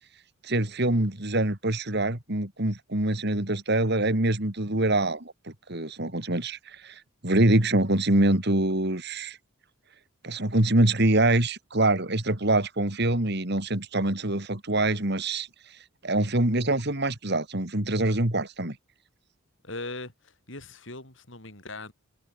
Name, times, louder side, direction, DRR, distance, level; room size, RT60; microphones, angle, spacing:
voice 1, 0.4-9.4 10.2-15.5 16.0-18.8, right 1 dB, 50° right, 3.0 m, -25 dB
voice 2, 19.6-21.9, left 2 dB, 60° left, 5.2 m, -40 dB
head